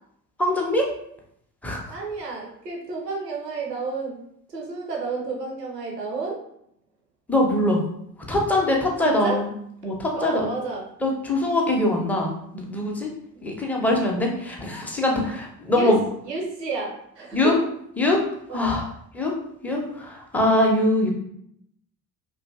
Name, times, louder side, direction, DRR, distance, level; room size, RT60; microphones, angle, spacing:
voice 1, 0.4-0.8 1.6-2.0 7.3-7.8 8.3-9.5 9.8-10.5 11.0-13.1 13.4-16.0 17.3-17.5 18.0-18.2 18.5-18.9 19.1-19.3 19.6-21.1, left 1 dB, 5° left, -1 dB, 0.4 m, -23 dB
voice 2, 1.9-4.2 4.5-6.4 9.0-9.4 10.1-10.8 15.7-16.0 16.2-17.5 18.5-18.7, right 4 dB, 90° right, -1 dB, 0.5 m, -30 dB
2.5 x 2.5 x 2.2 m, 0.72 s
figure-of-eight pair, 50°, 47 cm